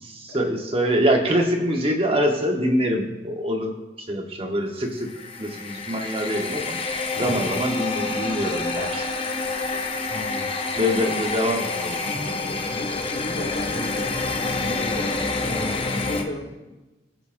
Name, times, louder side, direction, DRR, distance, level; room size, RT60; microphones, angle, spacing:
voice 1, 0.0-6.8 7.1-9.1 10.7-12.0 12.2-12.5, equal, 30° right, 2 dB, 1.2 m, -25 dB
sound 1, 5.0-16.2, left 3 dB, 30° left, 0.8 m, -28 dB
voice 2, 10.1-10.5 12.1-12.3 12.7-16.5, left 1 dB, 65° left, -1 dB, 2.4 m, -33 dB
18.0 x 7.2 x 2.6 m, 1.1 s
head